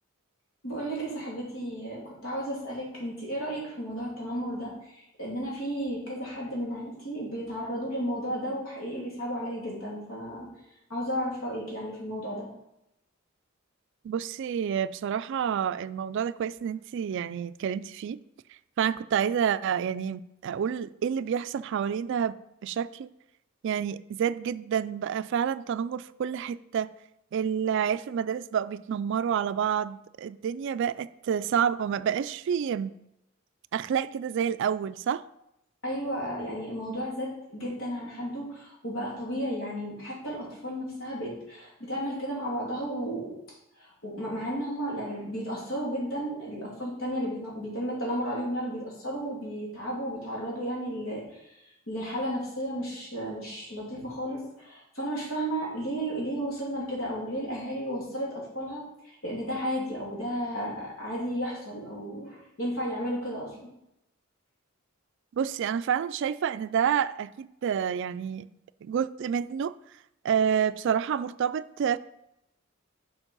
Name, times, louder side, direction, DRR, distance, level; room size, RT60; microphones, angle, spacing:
voice 1, 0.6-10.5 10.9-12.5 35.8-43.3 43.8-51.5 51.9-58.8 59.2-63.7, equal, 75° left, 2.9 m, -33 dB
voice 2, 14.0-18.2 18.8-22.4 22.6-23.1 23.6-26.9 27.3-32.9 33.7-35.2 65.3-68.5 68.8-69.7 70.2-72.0, right 8 dB, 60° right, 0.3 m, -28 dB
7.1 x 5.2 x 5.4 m
head